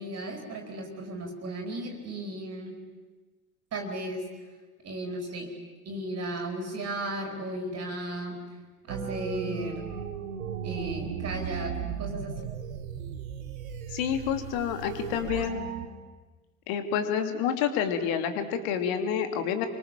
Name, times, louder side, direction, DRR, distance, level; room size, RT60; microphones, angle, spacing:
voice 1, 0.0-2.8 3.7-4.3 4.8-5.5 5.8-8.4 8.9-9.9 10.6-12.4, right 1 dB, 35° right, 2 dB, 4.5 m, -35 dB
sound 1, 8.9-15.9, right 8 dB, 75° right, 1.9 m, -36 dB
voice 2, 13.9-15.7 16.7-19.7, left 8 dB, 55° left, 7 dB, 3.1 m, -28 dB
28.0 x 24.5 x 7.6 m, 1.3 s
figure-of-eight pair, 70°, 42 cm